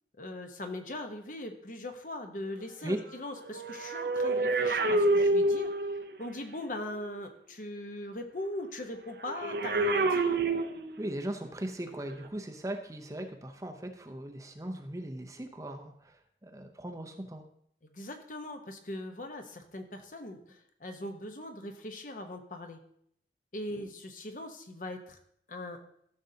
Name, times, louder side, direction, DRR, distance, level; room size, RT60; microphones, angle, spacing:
voice 1, 0.2-5.7 6.2-10.4 17.8-22.8 23.5-25.2 25.5-25.8, left 1 dB, 45° left, 5 dB, 0.9 m, -40 dB
sound 1, 3.4-6.1 9.3-11.2 12.1-12.3, right 2 dB, 60° right, 0.6 m, -28 dB
voice 2, 11.0-17.4, right 1 dB, 20° right, 5 dB, 0.6 m, -38 dB
14.0 x 6.4 x 2.8 m, 0.68 s
head